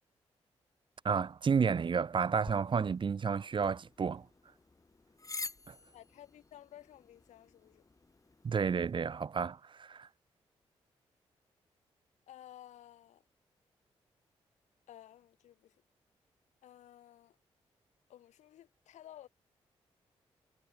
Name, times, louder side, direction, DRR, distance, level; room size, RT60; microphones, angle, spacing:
voice 1, 1.0-4.3 5.7-5.8 8.4-10.1, right 6 dB, 45° right, 0.6 m, -31 dB
sound 1, 2.4-8.9, left 3 dB, 30° left, 2.0 m, -49 dB
voice 2, 5.9-7.8 12.3-13.2 14.9-15.7 16.6-17.4 18.1-19.3, left 12 dB, 85° left, 3.2 m, -55 dB
supercardioid pair, 50°, 12 cm